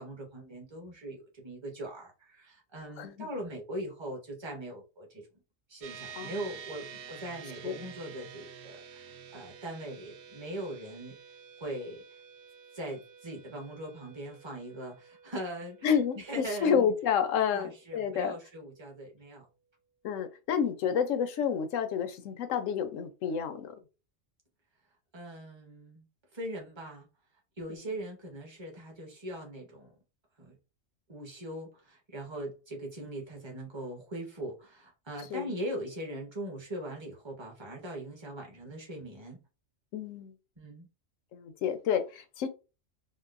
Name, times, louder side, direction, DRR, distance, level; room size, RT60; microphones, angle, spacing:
voice 1, 0.0-5.3 5.7-11.2 11.6-12.0 12.7-16.8 17.5-19.5 25.1-26.1 26.3-27.1 27.6-29.9 30.4-30.6 31.1-39.4 40.6-40.9, right 1 dB, 25° right, 0.9 m, -41 dB
voice 2, 3.0-3.3 6.2-6.4 7.6-7.8 15.8-18.3 20.0-23.7 35.3-35.5 39.9-40.3 41.3-42.5, left 7 dB, 90° left, 1.0 m, -29 dB
sound 1, 5.8-19.4, right 7 dB, 65° right, 0.7 m, -50 dB
3.8 x 2.1 x 2.4 m
omnidirectional pair, 1.3 m